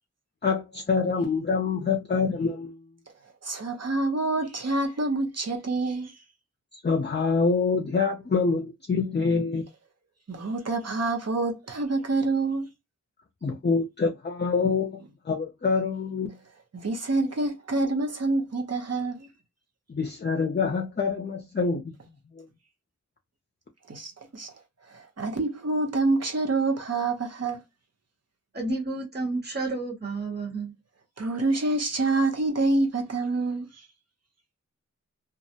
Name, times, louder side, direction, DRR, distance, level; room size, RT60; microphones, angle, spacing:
voice 1, 0.4-2.8 6.8-9.7 13.4-15.0 15.3-16.3 19.9-21.9 22.4-22.5, left 4 dB, 35° left, 0.5 m, -26 dB
voice 2, 3.4-6.1 10.3-12.7 16.7-19.3 23.9-24.5 25.2-27.6 31.2-33.7, right 2 dB, 60° right, 0.8 m, -27 dB
voice 3, 28.5-30.7, right 3 dB, 35° right, 1.2 m, -31 dB
2.4 x 2.0 x 2.7 m
wide cardioid pair, 45°, 30 cm